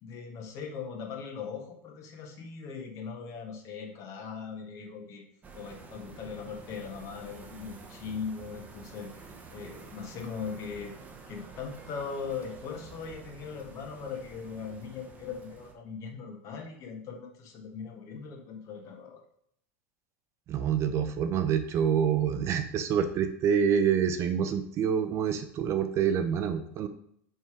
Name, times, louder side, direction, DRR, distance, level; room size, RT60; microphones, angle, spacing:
voice 1, 0.0-5.2 5.5-10.9 11.3-19.2, left 5 dB, 40° left, 3 dB, 1.5 m, -40 dB
sound 1, 5.4-15.7, right 4 dB, 20° right, 1.0 m, -49 dB
voice 2, 20.5-26.9, right 8 dB, 35° right, 8 dB, 0.6 m, -27 dB
5.4 x 4.8 x 4.9 m, 0.68 s
supercardioid pair, 135°, 8 cm